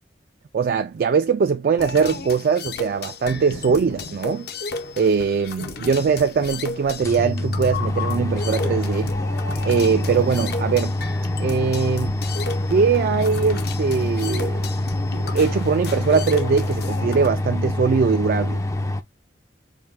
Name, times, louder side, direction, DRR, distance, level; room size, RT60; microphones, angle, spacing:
voice 1, 0.5-4.5 5.0-9.1 9.6-11.0 11.4-12.2 12.7-14.6 15.2-18.6, right 5 dB, 55° right, 0.3 m, -21 dB
sound 1, 1.8-17.3, left 3 dB, 65° left, 0.6 m, -33 dB
sound 2, 6.5-6.6 6.9-19.0, left 1 dB, 15° left, 0.4 m, -25 dB
4.3 x 2.2 x 3.5 m
head